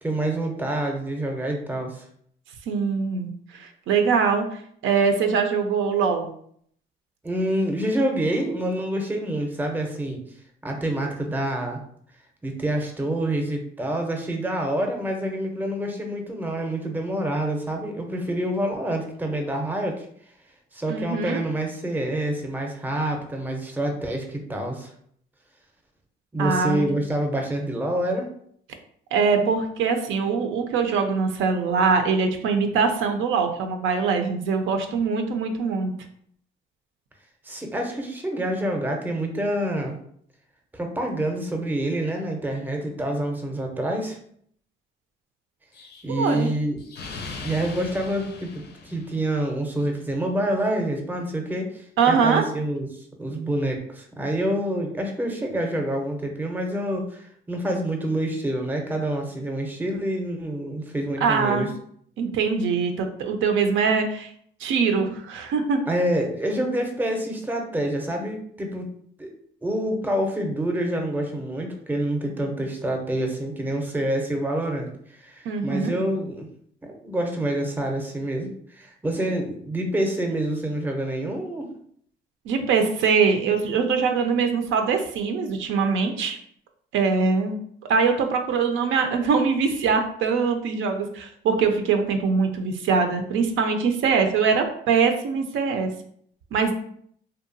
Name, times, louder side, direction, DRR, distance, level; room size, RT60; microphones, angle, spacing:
voice 1, 0.0-2.1 7.2-10.2 10.6-11.8 12.4-20.1 20.7-24.9 26.3-28.3 37.4-40.0 40.7-44.2 46.0-46.8 47.4-61.7 65.9-68.9 69.2-69.3 69.6-76.5 76.8-81.7, right 1 dB, 10° right, 3 dB, 0.5 m, -27 dB
voice 2, 2.7-6.3 20.9-21.4 26.4-26.9 29.1-35.9 46.1-46.5 52.0-52.4 61.2-61.7 62.2-64.3 64.6-65.8 75.5-75.9 82.5-86.4 86.9-87.5 87.9-95.9 96.5-96.7, right 5 dB, 80° right, 6 dB, 0.4 m, -23 dB
Explosion, 45.7-49.6, left 3 dB, 55° left, 0.5 m, -40 dB
2.7 x 2.2 x 2.5 m, 0.64 s
cardioid pair, 90°, 20 cm